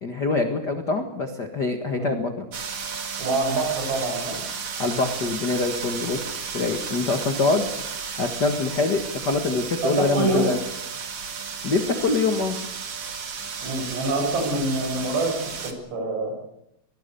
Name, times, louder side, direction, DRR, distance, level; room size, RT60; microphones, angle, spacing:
voice 1, 0.0-2.4 4.8-6.2 6.5-7.7 8.2-10.6 11.6-12.6, left 3 dB, 85° left, 5 dB, 0.9 m, -24 dB
sound 1, 2.5-15.7, right 6 dB, 45° right, 2.5 m, -33 dB
voice 2, 3.2-4.4 9.8-10.5 13.6-16.3, right 2 dB, 75° right, 2 dB, 10.0 m, -25 dB
24.5 x 21.0 x 6.9 m, 0.76 s
omnidirectional pair, 4.9 m